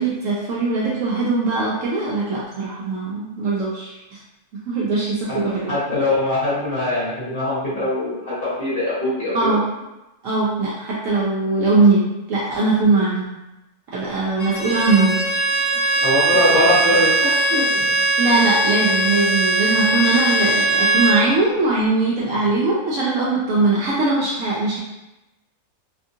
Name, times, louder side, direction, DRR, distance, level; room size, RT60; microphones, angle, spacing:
voice 1, 0.0-4.2 4.6-5.7 9.3-9.6 10.2-13.3 13.9-15.2 18.2-24.8, right 3 dB, 70° right, -6 dB, 0.8 m, -20 dB
voice 2, 5.7-9.6 16.0-17.8, left 2 dB, 40° left, -10 dB, 1.1 m, -22 dB
Bowed string instrument, 14.4-21.2, right 2 dB, 60° left, 1.1 m, -20 dB
2.8 x 2.4 x 2.6 m, 0.98 s
omnidirectional pair, 1.7 m